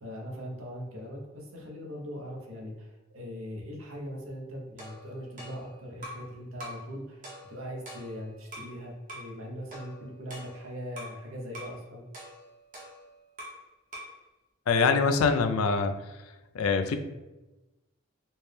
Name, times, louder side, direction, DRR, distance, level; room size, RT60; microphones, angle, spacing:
voice 1, 0.0-7.2 7.5-12.0, equal, 75° right, -1 dB, 0.8 m, -40 dB
sound 1, 4.8-6.3 6.6-6.9 7.2-8.8 9.1-9.3 9.7-11.2 11.5-11.8 12.1-13.7 13.9-14.2, equal, 40° right, 0.9 m, -45 dB
voice 2, 14.7-16.2 16.5-17.0, left 5 dB, 90° left, 7 dB, 0.4 m, -24 dB
4.2 x 2.2 x 3.3 m, 1.1 s
head